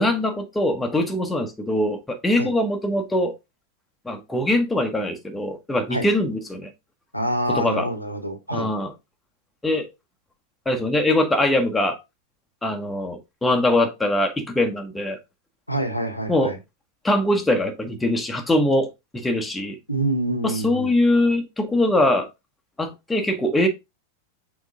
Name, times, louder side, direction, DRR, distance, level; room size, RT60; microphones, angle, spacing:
voice 1, 0.0-3.3 4.0-6.7 7.5-7.9 8.5-8.9 9.6-9.9 10.6-12.0 12.6-15.2 16.3-16.5 17.0-19.8 20.4-22.3 22.8-23.7, left 1 dB, 10° left, 1.1 m, -22 dB
voice 2, 7.1-8.7 15.7-16.6 19.9-20.9, right 1 dB, 90° left, 1.2 m, -26 dB
6.5 x 4.0 x 3.6 m
figure-of-eight pair, 90°, 0 cm